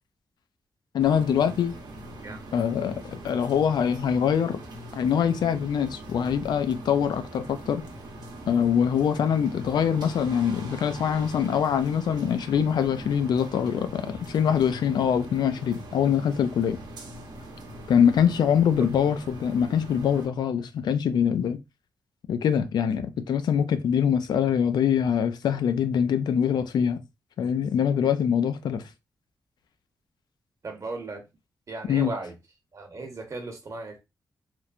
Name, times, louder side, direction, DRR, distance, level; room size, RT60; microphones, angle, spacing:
voice 1, 0.9-1.7 2.5-4.6 4.9-7.8 8.5-16.8 17.9-21.6 22.3-27.0 27.4-28.8 31.9-32.1, left 8 dB, 85° left, 0.4 m, -24 dB
sound 1, 1.0-20.3, right 1 dB, 80° right, 0.7 m, -42 dB
voice 2, 30.6-31.2 31.7-32.3 32.7-34.0, right 3 dB, 45° right, 0.8 m, -36 dB
3.0 x 2.1 x 2.4 m
cardioid pair, 90°, 7 cm